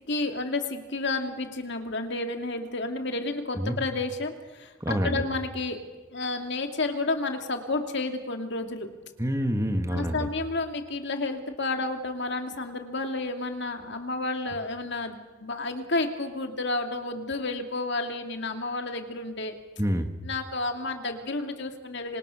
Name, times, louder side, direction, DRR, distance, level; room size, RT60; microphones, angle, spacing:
voice 1, 0.1-5.8 6.1-8.9 9.9-19.5 20.2-22.2, left 2 dB, 60° left, 5 dB, 2.4 m, -31 dB
voice 2, 4.8-5.2 9.2-10.3 19.8-20.1, equal, 15° right, 6 dB, 1.6 m, -27 dB
27.0 x 26.0 x 6.4 m, 1.3 s
head